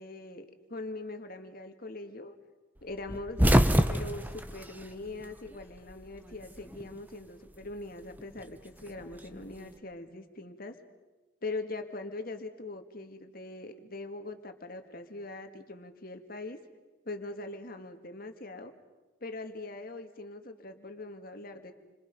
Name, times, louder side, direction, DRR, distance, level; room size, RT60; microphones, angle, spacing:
voice 1, 0.0-2.3 2.8-3.4 3.9-10.8 11.4-16.6 17.1-18.7 19.2-21.7, left 2 dB, 50° left, 6 dB, 2.1 m, -42 dB
sound 1, 3.1-5.6 5.9-7.0 8.2-9.6, equal, 10° right, 1.1 m, -26 dB
29.5 x 26.0 x 5.4 m, 1.2 s
head